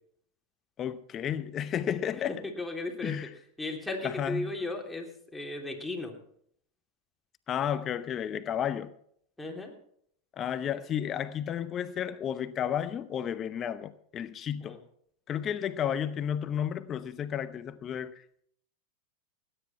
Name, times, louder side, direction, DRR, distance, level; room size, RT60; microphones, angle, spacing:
voice 1, 0.8-2.3 3.0-3.3 4.0-4.5 7.5-8.9 10.4-14.8 15.3-18.4, left 9 dB, 35° left, 0.8 m, -32 dB
voice 2, 2.1-3.2 3.6-6.1 9.4-9.7 10.7-10.8 14.6-14.8, left 2 dB, 5° left, 3.2 m, -36 dB
18.5 x 10.0 x 4.4 m
hypercardioid pair, 100°, 0 cm